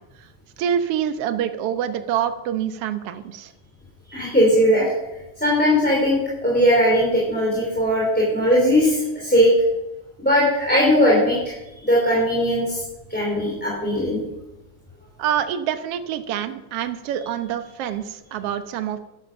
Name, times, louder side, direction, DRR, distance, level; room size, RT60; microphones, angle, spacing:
voice 1, 0.6-3.5 15.2-19.0, right 9 dB, 70° right, 9 dB, 1.5 m, -26 dB
voice 2, 4.1-4.9 5.4-9.5 10.2-11.5 11.8-12.8 13.1-14.2, equal, 5° left, -5 dB, 2.9 m, -19 dB
12.5 x 11.0 x 5.7 m, 1.0 s
omnidirectional pair, 3.7 m